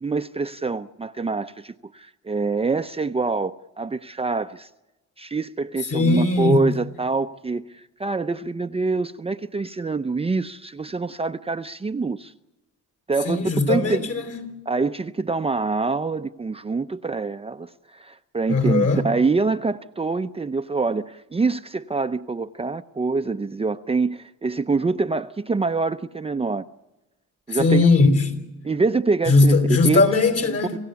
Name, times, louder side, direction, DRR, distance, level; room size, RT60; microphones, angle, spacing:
voice 1, 0.0-4.7 5.2-12.3 13.1-14.1 14.7-26.6 27.5-27.9 28.6-29.6 29.8-30.0 30.7-30.8, right 4 dB, 20° right, 0.7 m, -25 dB
voice 2, 5.9-6.7 13.2-14.6 18.5-19.1 27.5-28.3 29.3-30.7, left 3 dB, 50° left, 4.5 m, -19 dB
27.5 x 16.0 x 7.0 m
cardioid pair, 90°, 30 cm